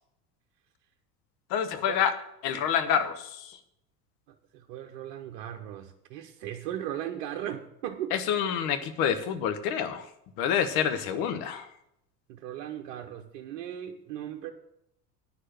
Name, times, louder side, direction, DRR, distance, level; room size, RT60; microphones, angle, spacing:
voice 1, 1.5-2.1 2.4-3.6 8.1-10.1 10.4-11.7, left 8 dB, 50° left, 10 dB, 1.2 m, -27 dB
voice 2, 4.3-8.1 12.3-14.5, right 11 dB, 55° right, 3 dB, 1.0 m, -37 dB
9.7 x 6.6 x 7.4 m, 0.79 s
figure-of-eight pair, 70°, 47 cm